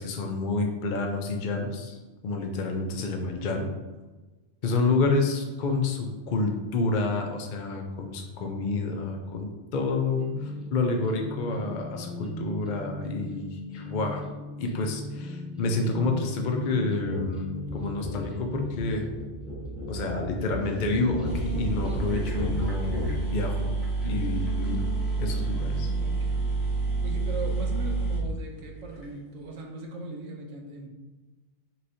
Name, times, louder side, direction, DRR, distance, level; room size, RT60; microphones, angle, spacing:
voice 1, 0.0-2.0 2.2-3.7 4.6-14.2 14.6-19.1 19.9-23.7 24.0-24.9 25.2-25.9, left 3 dB, 55° left, 3 dB, 0.6 m, -29 dB
sound 1, 10.2-27.5, left 1 dB, ahead, 0.7 m, -40 dB
sound 2, 17.0-17.3 17.5-23.2, left 1 dB, 85° left, 1.6 m, -35 dB
sound 3, 21.0-21.1 21.2-29.1, right 3 dB, 30° left, 1.5 m, -29 dB
voice 2, 27.0-30.9, right 2 dB, 85° right, 1 dB, 1.1 m, -38 dB
5.7 x 3.1 x 2.6 m, 1.2 s
omnidirectional pair, 1.3 m